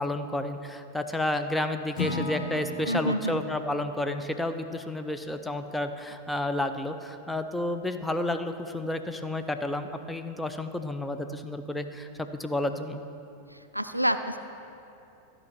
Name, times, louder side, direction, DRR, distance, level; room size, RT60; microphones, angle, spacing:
voice 1, 0.0-13.0, left 1 dB, 5° left, 7 dB, 0.5 m, -31 dB
Acoustic guitar / Strum, 1.9-6.0, left 3 dB, 50° left, 1.8 m, -38 dB
voice 2, 2.9-3.4 13.7-14.4, equal, 90° right, 9 dB, 0.3 m, -27 dB
14.0 x 5.3 x 6.0 m, 2.8 s
figure-of-eight pair, 90°, 0 cm